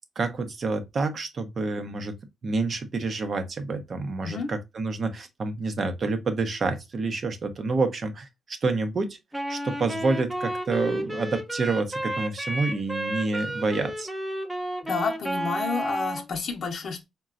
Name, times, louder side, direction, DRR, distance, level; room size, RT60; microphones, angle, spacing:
voice 1, 0.2-2.2 2.4-9.2 9.5-14.1, right 3 dB, 45° right, 0.7 m, -28 dB
Wind instrument woodwind instrument, 9.3-16.3, right 1 dB, 5° right, 0.4 m, -32 dB
voice 2, 14.9-17.0, left 4 dB, 60° left, 0.6 m, -30 dB
4.0 x 2.2 x 2.4 m
cardioid pair, 115°, 0 cm